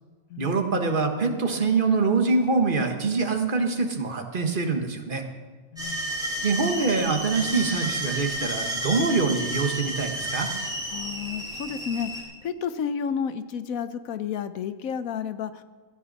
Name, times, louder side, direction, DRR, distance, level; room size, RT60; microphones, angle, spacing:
voice 1, 0.4-5.2 6.4-10.5, right 4 dB, 40° right, 5 dB, 1.5 m, -24 dB
voice 2, 5.7-6.2 10.9-15.6, left 7 dB, 90° left, 12 dB, 1.2 m, -31 dB
sound 1, 5.8-12.2, right 1 dB, 5° right, 3.1 m, -31 dB
Percussion, 7.2-11.0, left 2 dB, 15° left, 1.8 m, -45 dB
17.0 x 14.0 x 4.1 m, 1.5 s
omnidirectional pair, 1.4 m